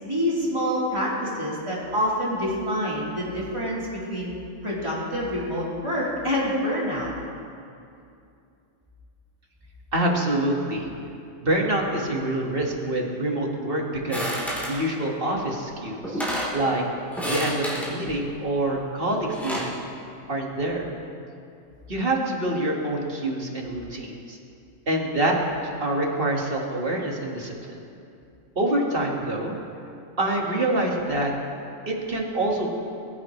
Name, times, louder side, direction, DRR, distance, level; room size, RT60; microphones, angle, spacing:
voice 1, 0.0-4.3 4.6-7.1, equal, 20° right, -8 dB, 3.9 m, -27 dB
voice 2, 9.9-10.9 11.4-16.2 16.5-16.8 17.3-19.8 20.3-20.9 21.9-24.4 24.9-27.8 28.6-29.6 30.2-31.3 31.9-32.8, right 1 dB, 45° right, -1 dB, 2.1 m, -26 dB
sound 1, 14.1-14.8 15.7-15.8 16.0-16.6 17.1-17.9 19.1-19.7, equal, ahead, 3.6 m, -29 dB
22.0 x 14.5 x 3.2 m, 2.5 s
omnidirectional pair, 1.3 m